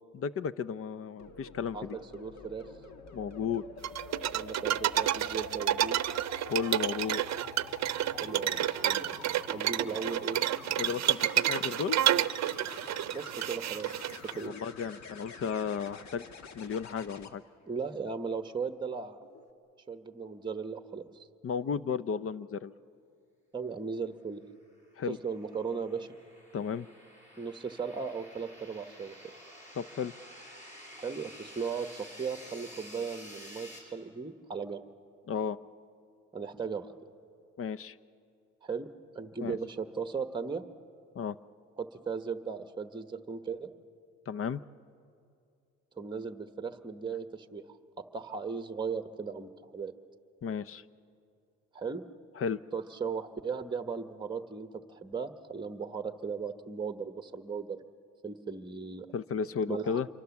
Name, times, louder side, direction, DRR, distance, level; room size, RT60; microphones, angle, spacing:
voice 1, 0.1-2.0 3.1-3.6 6.5-7.2 10.8-12.0 14.4-16.2 16.5-17.4 21.4-22.7 25.0-25.2 26.5-26.9 29.8-30.1 35.3-35.6 37.6-38.0 39.4-39.6 41.1-41.4 44.3-44.6 50.4-50.8 52.4-52.6 59.1-60.1, left 6 dB, 45° left, 17 dB, 0.7 m, -33 dB
sound 1, 1.2-17.3 19.2-19.5, left 4 dB, 65° left, 1.6 m, -48 dB
voice 2, 1.7-2.6 4.3-6.0 8.1-9.2 9.5-10.4 13.1-13.9 14.4-14.5 17.7-19.2 19.9-21.3 23.5-24.4 25.1-26.1 27.4-29.1 31.0-34.8 36.3-36.9 38.6-38.9 39.1-40.6 41.8-43.7 46.0-47.6 48.0-49.9 51.7-52.0 52.7-57.8 58.2-59.1 59.7-60.0, right 5 dB, 15° right, 8 dB, 1.1 m, -37 dB
sound 2, 3.8-14.3, right 12 dB, 60° right, 0.7 m, -30 dB
sound 3, 24.8-33.8, equal, 25° left, 7.4 m, -51 dB
27.0 x 23.5 x 7.1 m, 2.4 s
cardioid pair, 90°, 30 cm